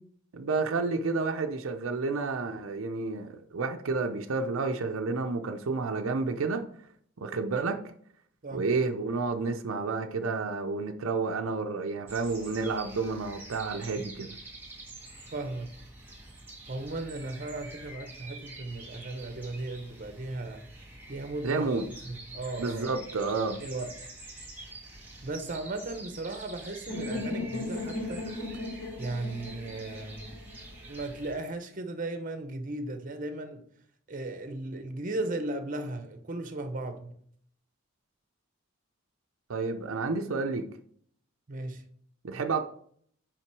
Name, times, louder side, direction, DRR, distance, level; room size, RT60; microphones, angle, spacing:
voice 1, 0.3-6.7 7.2-7.8 8.5-14.4 21.4-21.8 22.6-23.6 39.5-40.7 42.2-42.6, right 4 dB, 75° right, 0.6 m, -30 dB
sound 1, 12.1-31.3, right 2 dB, 10° right, 1.6 m, -47 dB
voice 2, 15.3-15.7 16.7-20.7 21.1-21.7 22.0-22.9 23.6-23.9 25.2-28.3 29.0-30.4 30.9-33.6 34.1-37.1 41.5-41.8, right 2 dB, 40° right, 0.8 m, -36 dB
sound 2, 26.9-30.8, left 2 dB, 75° left, 3.2 m, -36 dB
5.8 x 5.1 x 4.6 m
head